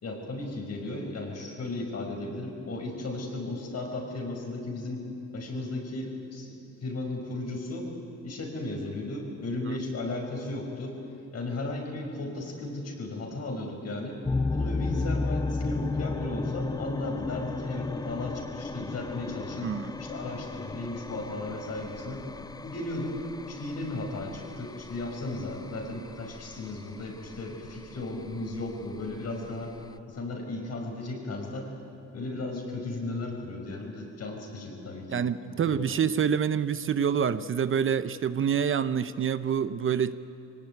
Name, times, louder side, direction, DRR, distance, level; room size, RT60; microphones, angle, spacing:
voice 1, 0.0-5.0 5.3-6.5 6.8-7.9 8.2-11.0 11.3-14.2 14.5-19.7 20.0-22.2 22.6-23.2 23.5-29.7 30.1-31.7 32.1-35.2 35.5-36.0, left 2 dB, 55° left, 1 dB, 5.8 m, -35 dB
sound 1, 14.2-30.0, left 3 dB, 15° left, 0.5 m, -35 dB
voice 2, 19.6-19.9 35.1-40.1, right 7 dB, 45° right, 13 dB, 0.7 m, -27 dB
23.5 x 18.5 x 9.5 m, 2.6 s
cardioid pair, 90°, 30 cm